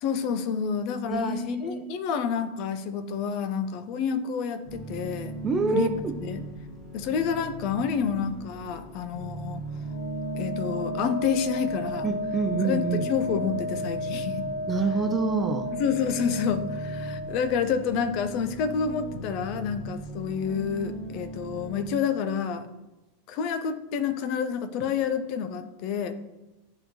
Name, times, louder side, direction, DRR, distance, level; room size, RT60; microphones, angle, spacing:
voice 1, 0.0-5.3 5.7-5.9 6.2-6.5 6.9-9.6 10.3-12.1 12.6-14.5 15.7-22.7 23.3-26.1, left 7 dB, 45° left, 12 dB, 0.6 m, -29 dB
voice 2, 1.1-1.9 5.4-6.2 12.0-13.1 14.7-15.7, right 4 dB, 20° right, 6 dB, 0.6 m, -27 dB
sound 1, 4.6-21.9, right 1 dB, 20° left, 2.2 m, -38 dB
Wind instrument woodwind instrument, 9.9-17.7, left 1 dB, 75° left, 0.7 m, -34 dB
11.5 x 3.8 x 2.9 m, 1.0 s
figure-of-eight pair, 85°, 0 cm